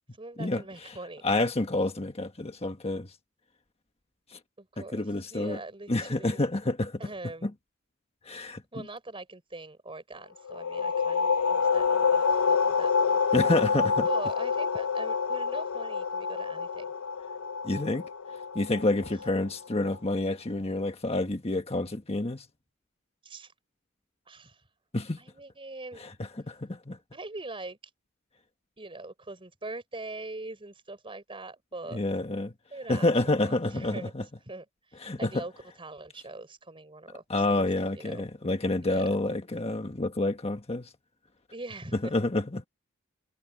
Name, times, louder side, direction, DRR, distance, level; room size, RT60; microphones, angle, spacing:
voice 1, 0.2-1.3 4.6-6.4 7.0-7.5 8.7-13.2 14.1-16.9 23.2-23.5 24.3-24.6 25.2-26.0 27.1-27.8 28.8-32.0 32.7-34.1 34.4-35.5 35.8-37.6 37.9-38.3 38.8-39.2 41.5-42.1, right 2 dB, 25° right, 4.4 m, -42 dB
voice 2, 1.2-3.1 4.3-4.4 4.8-5.6 5.9-7.0 7.4-7.5 8.3-8.6 13.3-14.1 17.6-18.0 18.5-22.4 24.9-25.2 26.0-26.1 26.5-27.0 31.9-32.5 32.9-34.2 35.0-35.4 37.3-40.9 42.1-42.7, left 2 dB, 30° left, 1.4 m, -28 dB
sound 1, 10.5-19.9, left 5 dB, 85° left, 0.6 m, -27 dB
head